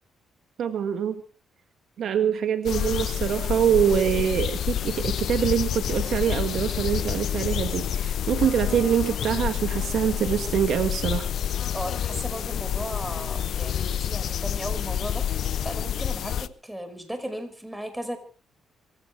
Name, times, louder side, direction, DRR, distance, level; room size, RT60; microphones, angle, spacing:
voice 1, 0.6-1.2 2.0-11.3, right 8 dB, 65° right, 9 dB, 1.9 m, -24 dB
sound 1, 2.6-16.5, left 9 dB, 65° left, 0.9 m, -28 dB
voice 2, 11.7-15.3 15.6-18.2, right 1 dB, 5° right, 8 dB, 5.5 m, -36 dB
25.5 x 16.0 x 3.4 m, 0.37 s
cardioid pair, 90°, 0 cm